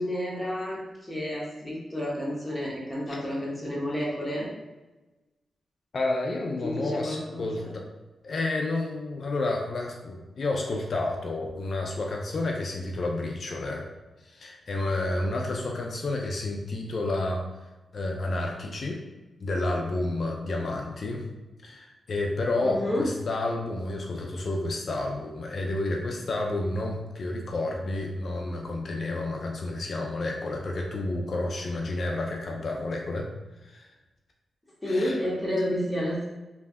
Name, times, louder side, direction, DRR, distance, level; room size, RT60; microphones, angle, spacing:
voice 1, 0.0-4.5 6.6-7.7 22.6-23.1 34.8-36.3, left 1 dB, 10° left, -5 dB, 1.2 m, -30 dB
voice 2, 5.9-7.9 8.2-13.9 14.2-17.4 17.9-19.0 19.4-21.3 21.6-33.3 33.6-33.9 34.9-35.2, left 2 dB, 60° left, 0 dB, 0.4 m, -30 dB
3.2 x 2.6 x 2.3 m, 1.1 s
cardioid pair, 55°, 0 cm